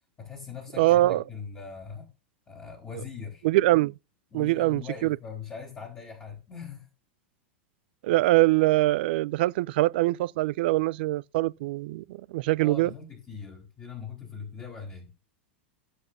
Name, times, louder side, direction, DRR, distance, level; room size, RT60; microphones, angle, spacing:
voice 1, 0.2-2.1 2.5-3.5 4.3-6.9 12.6-15.1, left 6 dB, 25° left, 3.6 m, -41 dB
voice 2, 0.8-1.2 3.4-3.9 4.3-5.2 8.0-12.0 12.3-12.9, right 18 dB, 65° right, 0.4 m, -23 dB
15.5 x 7.1 x 2.6 m
hypercardioid pair, 105°, 6 cm